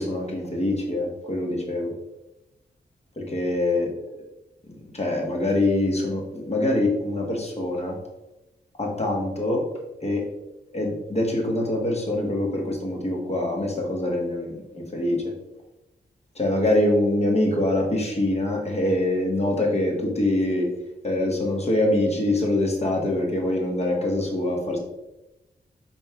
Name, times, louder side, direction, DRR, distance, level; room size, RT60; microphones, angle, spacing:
voice 1, 0.0-1.9 3.2-3.9 4.9-8.0 8.8-9.6 10.0-10.3 10.7-15.3 16.4-20.7 21.0-24.8, left 1 dB, 35° left, 0 dB, 1.1 m, -24 dB
5.2 x 4.3 x 2.3 m, 0.96 s
cardioid pair, 70°, 18 cm